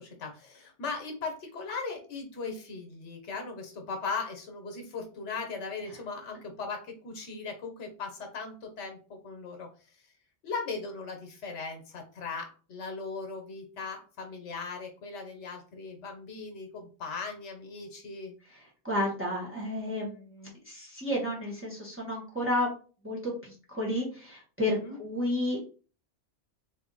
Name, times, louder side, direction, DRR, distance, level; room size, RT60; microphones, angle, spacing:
voice 1, 0.0-10.0 10.4-18.4 24.7-25.0, left 4 dB, 80° left, 4 dB, 1.1 m, -38 dB
voice 2, 18.8-22.7 23.0-25.6, left 1 dB, 10° right, -4 dB, 1.1 m, -31 dB
2.7 x 2.7 x 3.7 m, 0.38 s
omnidirectional pair, 1.2 m